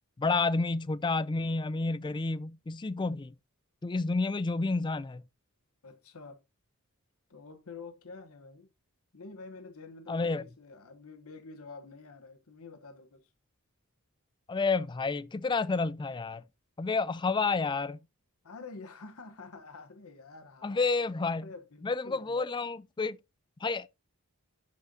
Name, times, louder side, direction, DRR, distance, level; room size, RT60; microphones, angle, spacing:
voice 1, 0.2-3.3 3.8-5.2 10.1-10.4 14.5-16.4 16.8-18.0 20.6-21.5 21.8-23.2 23.6-23.9, left 3 dB, 20° left, 0.3 m, -30 dB
voice 2, 5.8-6.4 7.3-8.7 9.1-13.3 18.4-20.9 21.3-22.4, left 4 dB, 70° left, 1.0 m, -48 dB
11.5 x 6.5 x 2.7 m
head